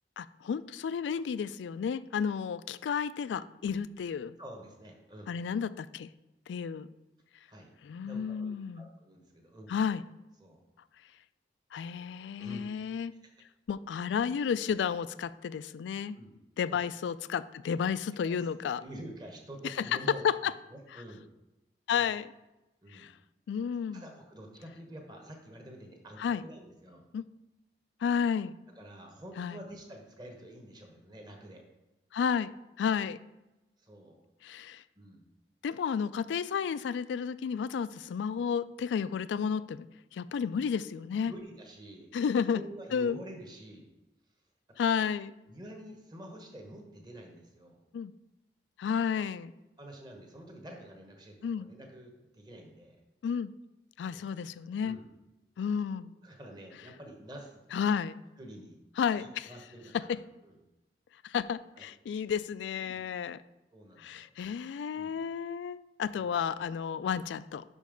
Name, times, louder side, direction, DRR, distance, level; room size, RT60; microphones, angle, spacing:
voice 1, 0.2-4.3 5.3-6.1 6.5-6.9 7.8-8.9 9.7-10.0 11.7-13.1 13.7-16.2 16.6-18.8 19.8-19.9 20.2-20.5 21.9-22.3 22.9-23.1 23.5-24.0 26.2-26.4 27.1-27.3 28.0-28.6 29.4-29.6 32.1-32.5 32.8-33.2 34.4-34.8 35.6-39.9 40.1-41.3 42.1-42.6 42.9-43.2 44.8-45.3 47.9-48.1 48.8-49.5 51.4-51.7 53.2-53.5 54.0-55.0 55.6-56.1 57.7-58.2 59.0-59.5 60.1-60.2 61.2-63.4 64.0-67.6, left 7 dB, 85° left, 15 dB, 0.3 m, -32 dB
voice 2, 4.4-5.3 7.5-7.7 8.0-9.8 10.4-10.6 12.4-12.7 16.1-16.3 16.6-16.8 18.2-18.5 18.8-20.2 20.7-21.2 21.9-22.1 22.8-23.1 23.9-27.1 28.7-31.6 33.8-34.2 34.9-35.2 41.3-42.1 42.5-43.9 44.8-44.9 45.4-47.8 49.2-49.3 49.8-53.0 54.1-54.3 54.8-55.1 56.0-57.9 58.4-58.8 59.2-60.1 60.4-60.6 61.8-61.9 62.8-63.1 63.7-64.3 64.9-65.1 66.1-66.3, right 1 dB, 25° right, 2 dB, 1.0 m, -48 dB
5.7 x 5.3 x 5.1 m, 0.99 s
head